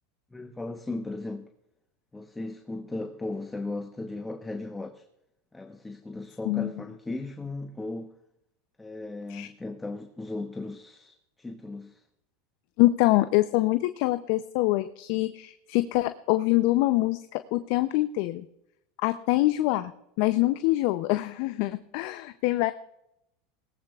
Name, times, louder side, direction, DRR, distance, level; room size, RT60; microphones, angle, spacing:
voice 1, 0.3-1.5 2.1-5.0 5.5-8.1 8.8-12.0, left 2 dB, 10° left, 1.0 m, -36 dB
voice 2, 12.8-18.5 19.0-19.9 20.2-22.7, left 18 dB, 65° left, 0.6 m, -25 dB
20.5 x 18.0 x 2.4 m
hypercardioid pair, 95°, 0 cm